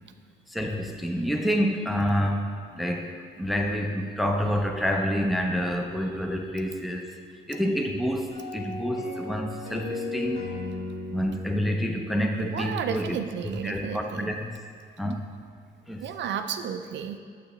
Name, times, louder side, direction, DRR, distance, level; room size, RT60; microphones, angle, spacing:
voice 1, 0.5-7.1 7.5-10.4 11.1-13.2 13.4-14.6 15.0-15.2 15.9-16.0, equal, ahead, 3 dB, 0.5 m, -28 dB
sound 1, 8.3-13.5, left 2 dB, 85° left, 1.8 m, -37 dB
voice 2, 12.4-14.3 16.0-17.2, right 7 dB, 65° right, 8 dB, 0.4 m, -32 dB
7.3 x 6.3 x 3.1 m, 2.1 s
cardioid pair, 90°, 20 cm